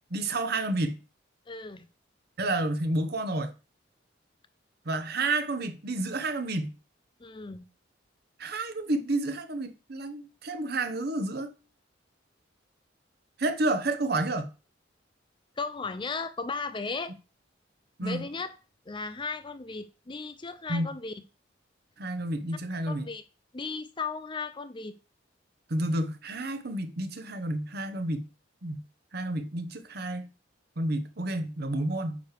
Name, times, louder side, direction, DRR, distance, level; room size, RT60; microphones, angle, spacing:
voice 1, 0.1-1.0 2.4-3.5 4.8-6.7 8.4-11.5 13.4-14.5 18.0-18.2 20.7-21.0 22.0-23.1 25.7-28.3 28.6-28.8 29.1-30.3 30.8-32.2, right 2 dB, 55° right, 1.0 m, -30 dB
voice 2, 1.5-1.9 7.2-7.7 15.6-17.1 18.0-18.5 18.9-21.1 22.9-23.2 23.5-25.0, left 4 dB, 25° left, 0.5 m, -36 dB
9.2 x 3.3 x 6.6 m
head